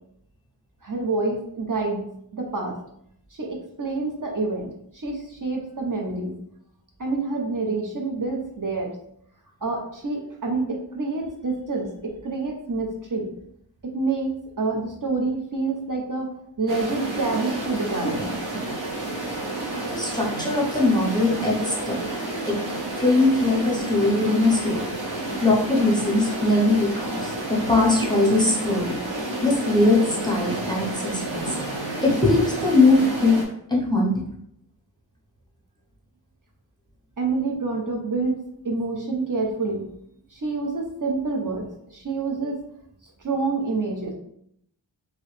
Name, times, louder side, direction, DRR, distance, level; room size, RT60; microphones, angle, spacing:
voice 1, 0.8-2.0 2.3-2.8 3.4-4.7 4.9-6.3 7.0-8.9 9.6-13.3 13.8-16.3 16.6-18.3 37.2-38.4 38.6-39.9 40.3-42.6 43.2-44.1, right 3 dB, 45° right, 0 dB, 0.7 m, -27 dB
sound 1, 16.7-33.4, right 2 dB, 80° right, 1.2 m, -30 dB
voice 2, 19.9-22.0 22.4-22.6 23.0-24.9 25.4-28.9 29.4-31.5 32.0-33.4 33.7-34.3, left 2 dB, 10° left, -3 dB, 0.8 m, -21 dB
3.0 x 2.8 x 3.2 m, 0.71 s
wide cardioid pair, 55°, 45 cm